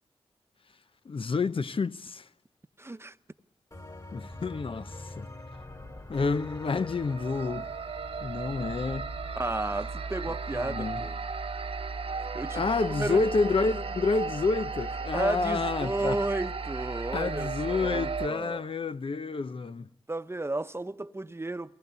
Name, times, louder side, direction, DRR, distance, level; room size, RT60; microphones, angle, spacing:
voice 1, 1.1-2.2 4.1-5.3 6.1-7.7 8.2-9.1 10.6-11.0 12.5-16.2 17.1-19.9, left 4 dB, 60° left, 0.8 m, -29 dB
voice 2, 2.8-3.2 9.3-11.2 12.3-12.6 13.0-13.2 15.1-18.6 20.1-21.7, right 2 dB, 25° right, 1.0 m, -33 dB
sound 1, 3.7-11.3, left 2 dB, 35° left, 3.1 m, -45 dB
sound 2, 6.7-18.3, right 4 dB, 65° right, 1.0 m, -35 dB
23.0 x 19.0 x 8.1 m
cardioid pair, 50°, 11 cm